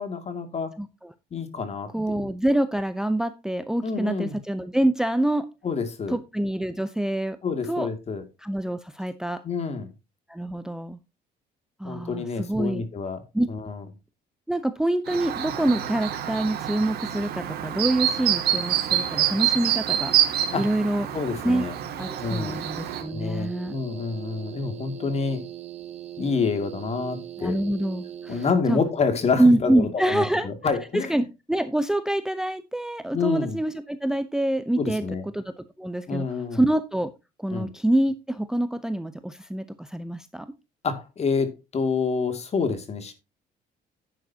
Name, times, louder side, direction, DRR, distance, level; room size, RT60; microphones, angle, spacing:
voice 1, 0.0-0.7 1.3-2.3 3.8-4.4 5.6-6.2 7.4-8.2 9.4-9.9 11.8-13.2 13.5-13.8 20.5-20.7 21.1-21.7 22.2-22.6 23.1-25.4 26.2-27.6 28.3-31.2 33.1-33.6 34.8-35.2 36.1-36.6 37.5-37.7 40.8-43.1, left 4 dB, 40° left, 2.4 m, -28 dB
voice 2, 0.8-1.1 1.9-5.5 6.1-7.4 7.7-7.9 8.4-9.4 10.3-11.0 11.8-12.8 13.3-13.5 14.5-21.1 21.4-21.6 22.0-23.7 27.4-28.8 29.4-30.5 30.9-35.0 35.3-36.2 36.5-37.1 37.4-40.5, right 1 dB, 5° right, 0.7 m, -26 dB
Chirp tweet, 15.1-23.0, right 11 dB, 70° right, 2.3 m, -27 dB
sound 1, 22.2-28.5, right 10 dB, 40° right, 1.3 m, -40 dB
11.0 x 9.3 x 2.8 m
cardioid pair, 110°, 17 cm